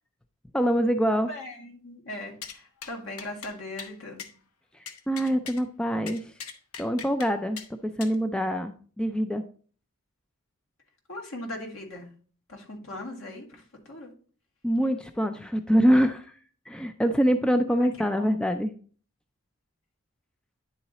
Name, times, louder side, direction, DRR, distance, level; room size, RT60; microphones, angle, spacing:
voice 1, 0.5-1.3 4.7-6.4 6.8-7.6 8.0-9.4 14.6-16.4 16.7-18.7, equal, 5° left, 7 dB, 0.3 m, -25 dB
voice 2, 1.1-4.3 11.1-12.1 12.5-14.1 17.8-17.9 18.2-18.3, left 1 dB, 70° left, 0 dB, 1.9 m, -39 dB
sound 1, 2.4-2.6 2.8-2.9 3.2-3.5 3.8-3.9 4.2-4.3 4.9-5.6 6.1-7.3 7.6-7.7 8.0-8.2, left 6 dB, 85° left, 0.9 m, -40 dB
9.9 x 3.9 x 4.1 m, 0.43 s
head